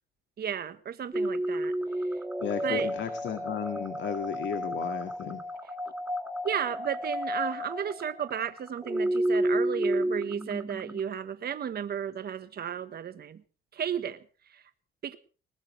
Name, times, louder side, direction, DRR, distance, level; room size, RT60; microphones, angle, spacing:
voice 1, 0.4-1.7 2.6-2.9 6.4-13.4 13.7-14.2 14.5-14.6 15.0-15.2, right 8 dB, 50° right, 11 dB, 1.3 m, -33 dB
sound 1, 1.1-11.0, equal, 10° right, 1.6 m, -31 dB
voice 2, 2.4-5.4, left 8 dB, 65° left, 8 dB, 2.1 m, -34 dB
20.5 x 19.0 x 3.3 m, 0.38 s
cardioid pair, 90°, 20 cm